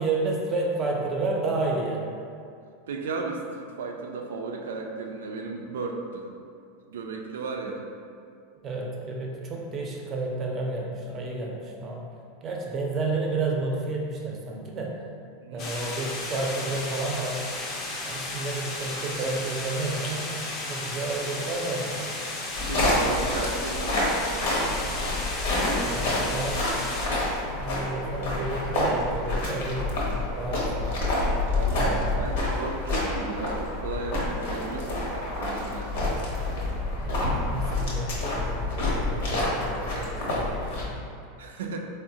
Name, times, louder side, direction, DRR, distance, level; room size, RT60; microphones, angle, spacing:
voice 1, 0.0-2.1 8.6-12.1 12.4-15.0 15.5-17.5 18.0-22.1 22.7-23.1 25.8-26.8 27.5-29.9 30.4-30.9 31.7-32.2 36.9-41.1, right 3 dB, 30° right, -1 dB, 0.5 m, -31 dB
voice 2, 2.9-6.3 6.9-7.8 15.4-15.7 22.6-24.5 31.5-35.9 41.4-41.8, right 3 dB, 85° right, 2 dB, 0.3 m, -35 dB
sound 1, 15.6-27.1, left 2 dB, 45° left, 0.5 m, -34 dB
sound 2, 22.5-40.8, left 2 dB, 70° left, 0.9 m, -28 dB
3.7 x 2.0 x 2.6 m, 2.4 s
hypercardioid pair, 115°, 0 cm